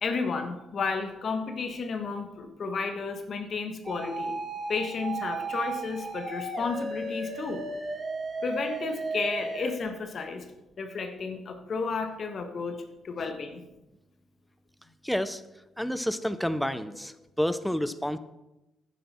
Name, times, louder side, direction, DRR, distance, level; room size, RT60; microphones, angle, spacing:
voice 1, 0.0-4.4 4.7-7.6 8.4-10.4 10.8-13.7, left 4 dB, 50° left, 6 dB, 1.3 m, -32 dB
sound 1, 3.9-9.7, right 3 dB, 35° right, 1.5 m, -34 dB
voice 2, 15.0-15.4 15.8-18.2, equal, 5° left, 13 dB, 0.6 m, -29 dB
10.5 x 9.5 x 4.3 m, 0.97 s
cardioid pair, 90°, 0 cm